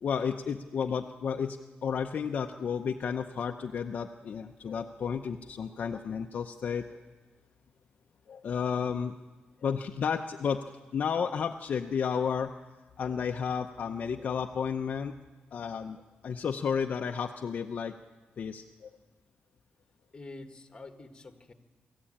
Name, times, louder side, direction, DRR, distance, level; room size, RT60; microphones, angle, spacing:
voice 1, 0.0-7.0 8.3-9.2 9.6-10.7 10.9-12.5 13.0-15.2 15.5-17.9 18.4-18.9, left 6 dB, 50° left, 4 dB, 0.7 m, -32 dB
voice 2, 20.1-21.5, left 2 dB, 25° left, 6 dB, 1.7 m, -47 dB
24.0 x 14.5 x 8.8 m, 1.3 s
wide cardioid pair, 145°, 3 cm